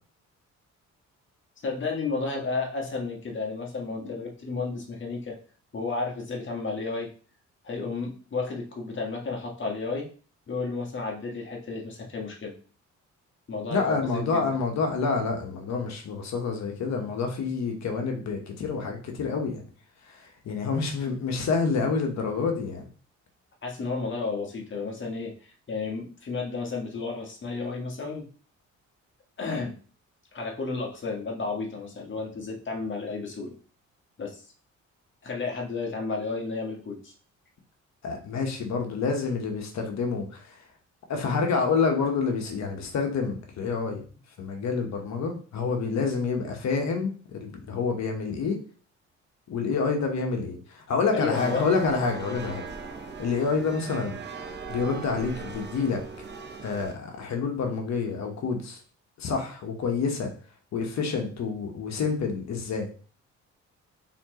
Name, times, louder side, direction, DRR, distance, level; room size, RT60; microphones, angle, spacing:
voice 1, 1.6-5.4 5.7-7.1 7.6-10.1 10.5-12.5 13.5-14.5 23.6-28.3 29.4-29.7 30.3-33.5 34.2-34.4 35.2-37.1 51.1-51.7, left 4 dB, 40° left, 0 dB, 1.6 m, -32 dB
voice 2, 13.7-19.6 20.4-22.8 38.0-40.4 41.1-44.0 44.4-48.6 49.5-52.6 53.2-54.2 54.7-56.0 56.6-58.8 59.2-60.3 60.7-62.9, left 4 dB, 65° left, 3 dB, 1.3 m, -28 dB
sound 1, 51.3-56.9, right 4 dB, 35° right, 0.8 m, -39 dB
4.3 x 3.9 x 3.1 m, 0.40 s
cardioid pair, 90°, 30 cm